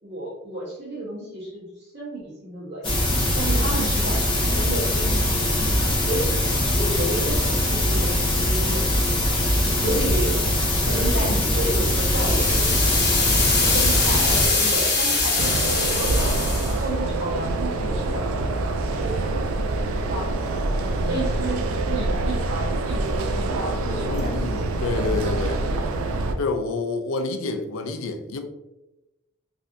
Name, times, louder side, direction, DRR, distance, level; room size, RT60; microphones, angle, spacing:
voice 1, 0.0-6.4 6.7-9.3 9.7-10.4 10.8-12.9 13.6-16.4 16.6-19.2 20.0-20.4 20.7-24.6, right 1 dB, 50° right, -6 dB, 1.3 m, -32 dB
sound 1, 2.8-14.5, left 1 dB, 25° left, 0.7 m, -22 dB
sound 2, 11.8-16.8, left 3 dB, 50° left, 1.0 m, -23 dB
sound 3, 15.4-26.3, right 2 dB, 85° right, 0.4 m, -25 dB
voice 2, 24.1-25.6 26.4-28.4, left 3 dB, 75° left, 6 dB, 0.4 m, -28 dB
3.2 x 2.7 x 2.6 m, 0.95 s
head